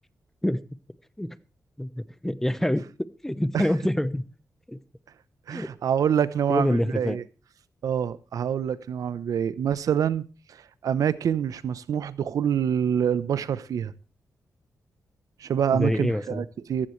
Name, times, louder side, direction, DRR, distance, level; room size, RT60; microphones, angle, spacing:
voice 1, 1.8-2.8 3.2-4.2 4.7-4.8 5.5-5.7 6.5-7.2 15.7-16.4, left 1 dB, 5° left, 0.9 m, -26 dB
voice 2, 5.5-7.2 7.8-13.9 15.4-16.9, right 8 dB, 90° right, 0.8 m, -26 dB
15.0 x 15.0 x 3.2 m
wide cardioid pair, 100°, 6 cm